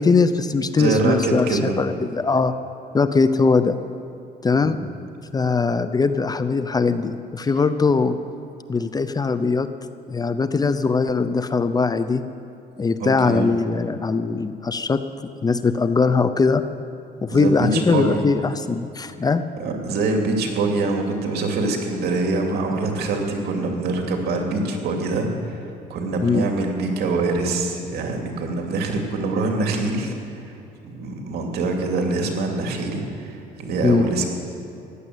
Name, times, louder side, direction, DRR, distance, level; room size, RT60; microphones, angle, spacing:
voice 1, 0.0-2.6 2.9-3.8 4.4-4.8 5.3-8.2 8.7-9.7 10.1-12.2 12.8-15.0 15.4-16.6 17.2-19.4 26.2-26.5 33.8-34.0, left 4 dB, 25° left, 11 dB, 0.6 m, -20 dB
voice 2, 0.8-1.8 4.5-4.9 13.0-13.5 17.3-18.2 19.6-30.1 30.4-30.5 30.8-34.2, right 3 dB, 70° right, 2 dB, 2.6 m, -24 dB
15.0 x 11.0 x 8.1 m, 2.8 s
cardioid pair, 110°, 17 cm